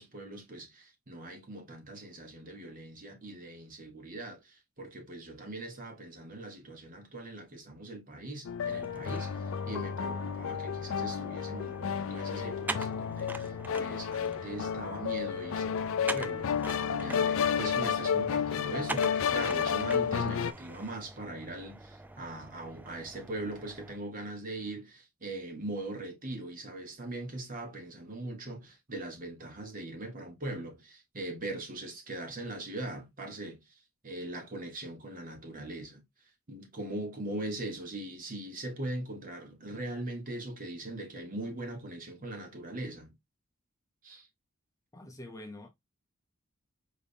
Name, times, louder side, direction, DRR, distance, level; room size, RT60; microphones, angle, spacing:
voice 1, 0.0-16.5 16.9-33.6 34.0-36.0 36.5-43.1 44.0-44.3, right 2 dB, 40° right, 1.5 m, -41 dB
sound 1, 8.4-20.5, left 7 dB, 65° left, 0.4 m, -31 dB
sound 2, 8.7-24.0, right 2 dB, 10° right, 0.4 m, -44 dB
voice 2, 44.9-45.7, left 1 dB, 15° left, 0.7 m, -45 dB
5.1 x 3.6 x 2.7 m
head